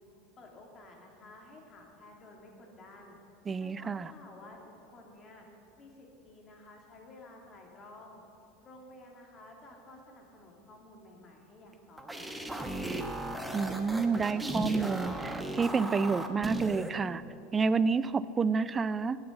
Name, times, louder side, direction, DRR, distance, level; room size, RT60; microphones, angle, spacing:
voice 1, 0.4-3.2 3.6-5.5 5.8-8.2 8.6-12.7, left 2 dB, 35° left, 0 dB, 2.5 m, -53 dB
voice 2, 3.5-4.1 13.5-17.2 17.5-19.2, right 5 dB, 25° right, 16 dB, 0.4 m, -29 dB
sound 1, 11.7-16.9, right 1 dB, 5° right, 1.0 m, -36 dB
8.8 x 8.7 x 8.0 m, 2.8 s
hypercardioid pair, 95°, 0 cm